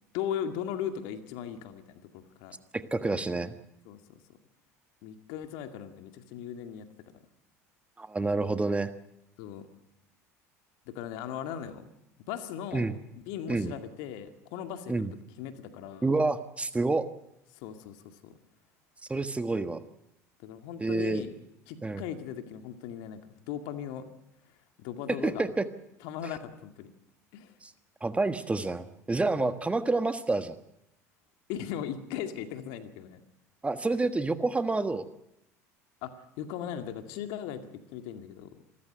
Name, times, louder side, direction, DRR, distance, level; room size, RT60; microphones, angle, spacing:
voice 1, 0.1-2.6 3.9-4.0 5.0-6.9 9.4-9.7 10.9-11.9 12.3-15.1 15.4-16.1 17.6-18.3 20.4-21.3 21.7-23.2 23.5-24.1 24.8-25.4 26.0-26.9 27.3-27.5 29.4-29.5 31.5-33.2 36.0-36.1 36.4-38.5, left 9 dB, 65° left, 7 dB, 2.2 m, -38 dB
voice 2, 2.7-3.5 8.0-8.9 12.7-12.9 13.5-13.7 14.9-15.1 16.0-17.0 19.1-19.8 20.8-21.2 21.8-22.0 25.2-25.6 27.6-27.7 28.0-30.6 33.6-35.0, right 3 dB, 15° right, 10 dB, 1.5 m, -28 dB
26.5 x 14.0 x 8.0 m, 0.81 s
hypercardioid pair, 70°, 8 cm